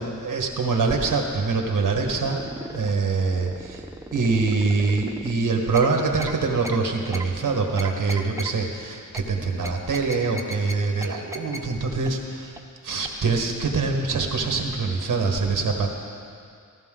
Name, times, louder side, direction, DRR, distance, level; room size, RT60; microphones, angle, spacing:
voice 1, 0.0-2.4 2.7-3.8 4.1-12.5 12.8-15.9, right 4 dB, 80° right, 2 dB, 1.6 m, -24 dB
sound 1, 2.2-2.9 3.3-5.3 5.7-5.9 6.2-6.3 6.6-6.8 7.1-7.3 7.8-8.5 9.1-9.2 9.6-10.7 11.0-11.1 11.3-11.6 12.1-12.2 12.6-12.7 13.0-13.1, right 1 dB, 10° right, 0.7 m, -35 dB
15.0 x 14.5 x 3.8 m, 2.3 s
wide cardioid pair, 95°, 32 cm